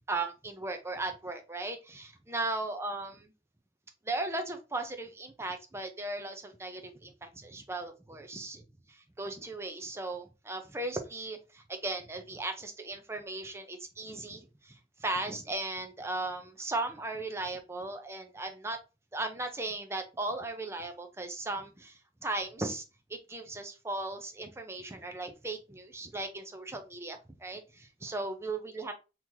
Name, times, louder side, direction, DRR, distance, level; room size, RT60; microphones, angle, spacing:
voice 1, 0.1-3.3 4.0-8.6 8.9-18.8 19.1-22.8 23.1-28.9, right 2 dB, 15° right, 0.5 m, -37 dB
3.0 x 2.9 x 3.7 m
head